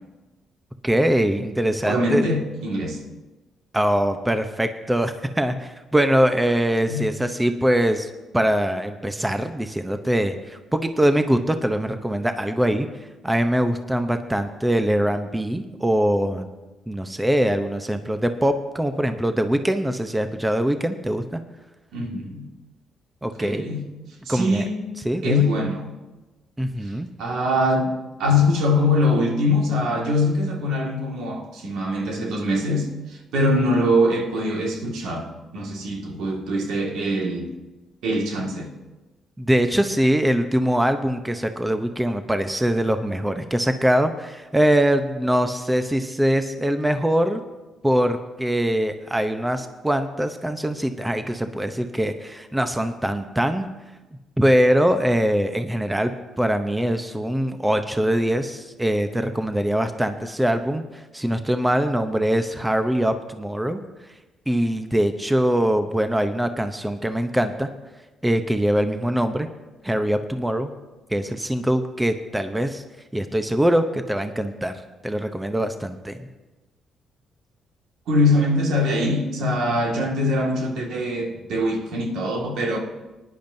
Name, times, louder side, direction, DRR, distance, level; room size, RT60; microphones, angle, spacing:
voice 1, 0.8-2.3 3.7-8.1 8.3-12.9 13.2-16.5 16.9-21.4 23.2-23.6 24.3-24.7 25.0-25.4 26.6-27.1 39.4-47.4 47.8-53.7 54.4-63.8 64.5-67.7 68.2-69.5 69.8-70.7 71.1-72.8 73.1-74.7 75.0-76.2, equal, 10° right, 8 dB, 0.7 m, -22 dB
voice 2, 1.8-3.0 6.9-7.1 21.9-22.5 23.4-23.8 24.3-24.8 25.2-26.0 27.2-27.9 28.2-37.5 38.0-38.7 78.1-82.8, left 1 dB, 80° right, 1 dB, 1.9 m, -23 dB
19.5 x 10.5 x 2.7 m, 1.1 s
cardioid pair, 90°, 0 cm